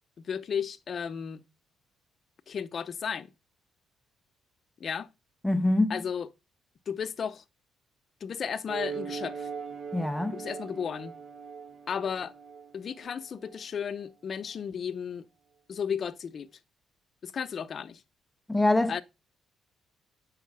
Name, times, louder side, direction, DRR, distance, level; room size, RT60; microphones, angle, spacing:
voice 1, 0.2-1.4 2.5-3.3 4.8-5.1 5.9-6.3 6.9-7.4 8.2-9.5 10.3-11.2 11.9-12.3 12.7-15.3 15.7-16.5 17.2-18.0 18.9-19.0, left 7 dB, 50° left, 0.8 m, -34 dB
voice 2, 5.4-6.0 9.9-10.3 18.5-18.9, left 2 dB, 5° left, 0.6 m, -24 dB
sound 1, 8.7-13.6, right 6 dB, 40° right, 1.4 m, -40 dB
8.4 x 5.7 x 5.6 m
cardioid pair, 95°, 0 cm